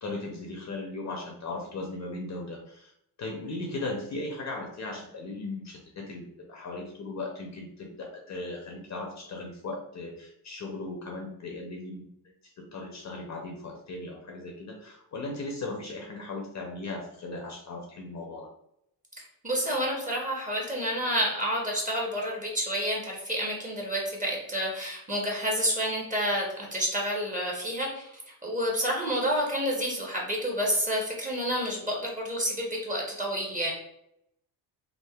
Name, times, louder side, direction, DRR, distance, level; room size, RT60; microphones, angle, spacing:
voice 1, 0.0-2.9 3.2-12.1 12.6-18.5, left 2 dB, 40° left, 1 dB, 0.6 m, -37 dB
voice 2, 19.4-28.1 28.4-33.7, equal, 20° right, -2 dB, 0.9 m, -29 dB
3.4 x 2.4 x 2.3 m, 0.76 s
cardioid pair, 100°, 44 cm